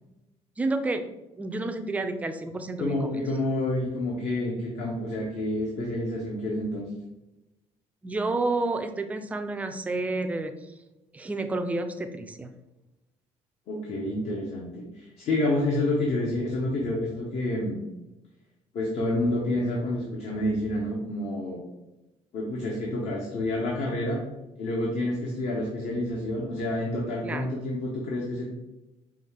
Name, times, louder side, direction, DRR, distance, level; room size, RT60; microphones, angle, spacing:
voice 1, 0.6-1.1 1.4-3.1 8.0-10.5 11.1-12.5 27.2-27.6, right 2 dB, 10° right, 7 dB, 0.3 m, -30 dB
voice 2, 2.8-6.9 13.7-17.8 18.7-21.6 22.3-24.2 24.6-28.5, left 1 dB, 65° left, -2 dB, 0.8 m, -28 dB
5.0 x 2.3 x 3.3 m, 0.97 s
cardioid pair, 135°, 12 cm